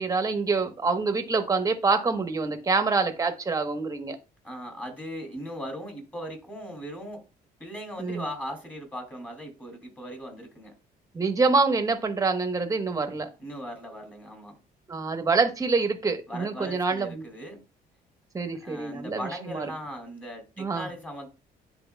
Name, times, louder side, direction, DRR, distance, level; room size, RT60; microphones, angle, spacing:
voice 1, 0.0-4.2 8.0-8.3 11.1-13.3 14.9-17.2 18.3-19.2 19.5-19.7 20.6-20.9, right 4 dB, 20° right, 1.2 m, -26 dB
voice 2, 4.4-7.2 7.6-10.7 13.4-14.5 16.3-17.6 18.6-21.3, equal, 10° left, 2.7 m, -38 dB
10.5 x 4.2 x 2.3 m
cardioid pair, 120°, 16 cm